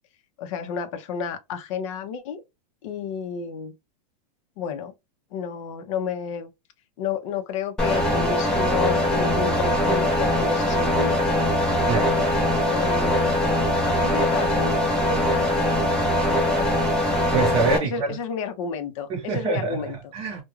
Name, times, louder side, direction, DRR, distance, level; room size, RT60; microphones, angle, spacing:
voice 1, 0.4-2.4 2.8-3.7 4.6-4.9 5.3-6.5 7.0-11.2 12.7-13.5 13.8-15.5 16.6-16.7 17.8-20.1, left 6 dB, 50° left, 0.6 m, -31 dB
sound 1, 7.8-17.8, left 1 dB, 5° left, 0.5 m, -22 dB
voice 2, 11.9-12.2 17.3-18.1 19.1-19.8 20.1-20.4, right 4 dB, 25° right, 0.9 m, -25 dB
2.3 x 2.2 x 3.0 m
supercardioid pair, 165°, 21 cm